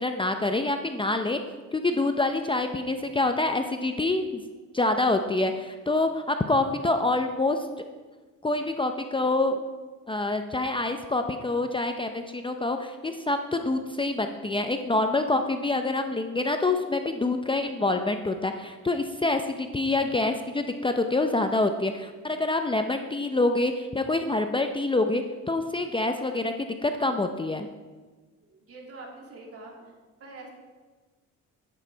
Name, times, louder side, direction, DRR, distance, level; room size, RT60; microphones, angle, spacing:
voice 1, 0.0-1.4 1.7-4.4 4.7-7.6 8.4-9.6 10.1-27.7, left 2 dB, 15° left, 6 dB, 0.6 m, -26 dB
voice 2, 28.5-29.9 30.2-30.5, right 2 dB, 50° right, -1 dB, 2.7 m, -44 dB
9.8 x 8.3 x 4.6 m, 1.3 s
cardioid pair, 90°, 30 cm